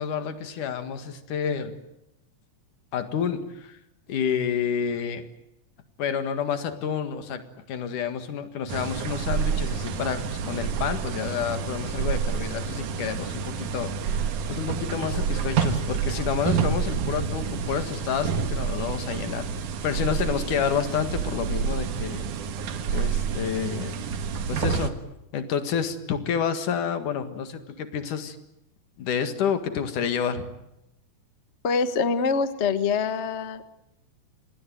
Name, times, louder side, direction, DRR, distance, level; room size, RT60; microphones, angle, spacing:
voice 1, 0.0-1.8 2.9-3.8 4.1-5.2 6.0-7.4 7.7-19.5 19.8-22.3 22.9-24.0 24.5-24.9 25.3-28.4 29.0-30.5, left 7 dB, 85° left, 9 dB, 3.4 m, -29 dB
sound 1, 8.7-24.9, right 6 dB, 80° right, 3.0 m, -28 dB
voice 2, 31.6-33.7, left 5 dB, 45° left, 11 dB, 0.8 m, -25 dB
26.5 x 20.5 x 9.3 m, 0.87 s
omnidirectional pair, 3.5 m